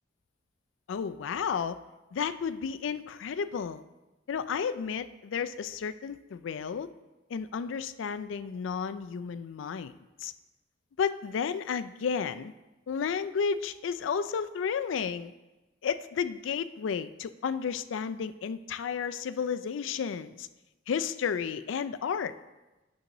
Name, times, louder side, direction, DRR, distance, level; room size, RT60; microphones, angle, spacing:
voice 1, 0.9-1.8 2.1-3.8 4.3-6.9 7.3-9.9 10.2-10.3 11.0-12.5 12.9-15.3 15.8-20.5 20.9-22.3, left 6 dB, 80° left, 13 dB, 0.4 m, -32 dB
9.3 x 6.4 x 3.0 m, 1.1 s
head